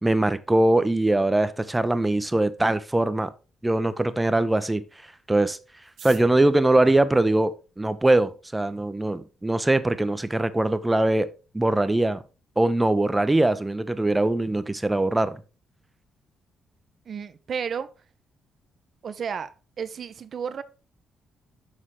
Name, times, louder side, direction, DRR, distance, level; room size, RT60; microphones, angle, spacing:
voice 1, 0.0-3.3 3.6-4.8 5.3-5.6 6.0-11.3 11.5-12.2 12.6-15.4, right 2 dB, 15° right, 0.7 m, -22 dB
sound 1, 5.8-8.1 8.9-9.0 9.2-9.3 9.5-10.0 10.3-10.4 10.6-11.0 11.4-11.6 11.9-12.2, right 8 dB, 80° right, 1.3 m, -49 dB
voice 2, 17.1-17.9 19.0-20.6, right 7 dB, 55° right, 0.7 m, -32 dB
6.5 x 6.1 x 3.7 m
cardioid pair, 75°, 0 cm